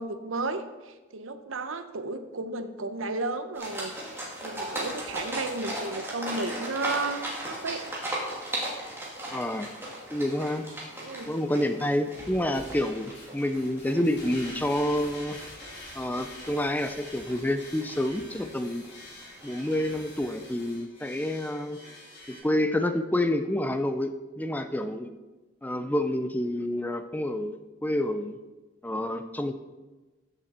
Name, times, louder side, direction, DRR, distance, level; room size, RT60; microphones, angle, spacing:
voice 1, 0.0-3.9 4.4-7.8 11.0-11.3, right 3 dB, 80° right, 9 dB, 0.9 m, -33 dB
sound 1, 3.5-20.7, right 1 dB, 10° right, 2.4 m, -38 dB
voice 2, 9.3-9.7 10.1-10.7 11.3-15.4 15.9-18.8 19.4-21.8 22.3-25.1 25.6-28.4 28.8-29.5, left 1 dB, 10° left, 9 dB, 0.4 m, -28 dB
sound 2, 12.1-22.4, left 1 dB, 55° left, 3.8 m, -46 dB
15.0 x 6.9 x 4.3 m, 1.2 s
head